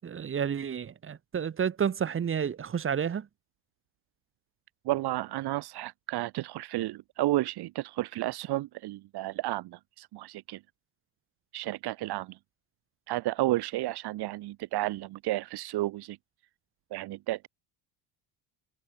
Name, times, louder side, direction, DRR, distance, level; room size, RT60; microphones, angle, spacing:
voice 1, 0.0-3.3, right 7 dB, 25° right, 6.6 m, -30 dB
voice 2, 4.9-10.6 11.5-12.4 13.1-16.2 16.9-17.5, right 16 dB, 55° right, 7.1 m, -32 dB
cardioid pair, 170°, 46 cm